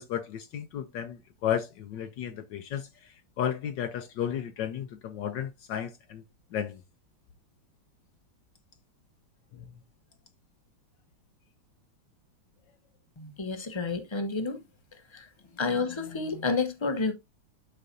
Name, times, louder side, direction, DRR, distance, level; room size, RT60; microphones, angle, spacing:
voice 1, 0.0-6.2 6.5-6.8 9.5-9.7, left 9 dB, 70° left, 1.3 m, -33 dB
voice 2, 13.2-14.6 15.1-15.3 15.6-17.1, left 4 dB, 25° left, 0.6 m, -30 dB
11.5 x 4.4 x 2.6 m
omnidirectional pair, 2.2 m